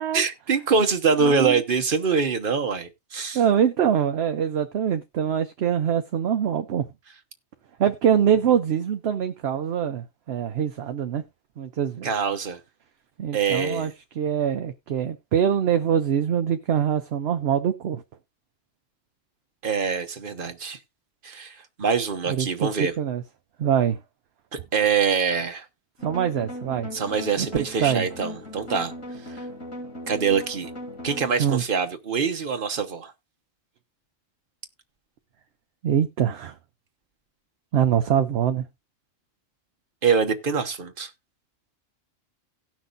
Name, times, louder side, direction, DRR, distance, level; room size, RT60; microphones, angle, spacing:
voice 1, 0.1-3.4 12.0-12.6 13.3-13.9 19.6-20.8 21.2-22.9 24.7-25.6 26.9-28.9 30.1-30.7 31.0-33.1 40.0-41.1, right 5 dB, 45° right, 1.2 m, -24 dB
voice 2, 1.2-1.6 3.3-6.9 7.8-11.2 11.6-12.1 13.2-13.9 14.2-18.0 22.3-23.2 23.6-24.0 26.0-26.9 27.4-28.1 31.4-31.6 35.8-36.5 37.7-38.6, right 9 dB, 60° right, 0.8 m, -24 dB
sound 1, 26.0-31.5, left 1 dB, 85° left, 5.5 m, -38 dB
18.0 x 6.0 x 2.5 m
omnidirectional pair, 1.3 m